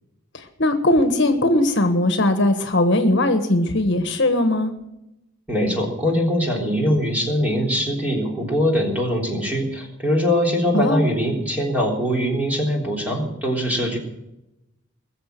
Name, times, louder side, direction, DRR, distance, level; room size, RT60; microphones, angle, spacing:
voice 1, 0.3-4.7 10.7-11.0, left 1 dB, 55° left, 8 dB, 1.4 m, -19 dB
voice 2, 5.5-14.0, equal, 5° right, -1 dB, 3.6 m, -22 dB
21.0 x 7.5 x 7.6 m, 0.90 s
head